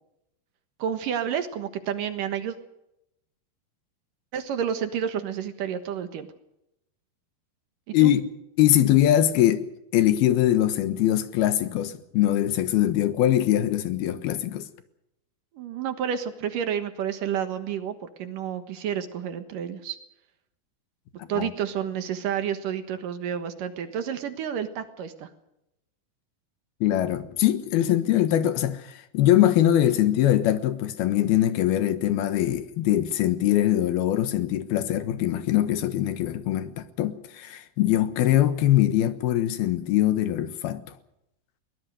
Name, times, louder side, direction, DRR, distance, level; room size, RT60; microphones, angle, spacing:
voice 1, 0.8-2.6 4.3-6.3 7.9-8.1 15.5-20.0 21.3-25.3, right 8 dB, 65° right, 2.8 m, -30 dB
voice 2, 8.6-9.7 9.9-14.7 21.2-21.5 26.8-40.8, left 12 dB, 80° left, 3.2 m, -22 dB
22.5 x 19.5 x 6.4 m
omnidirectional pair, 4.4 m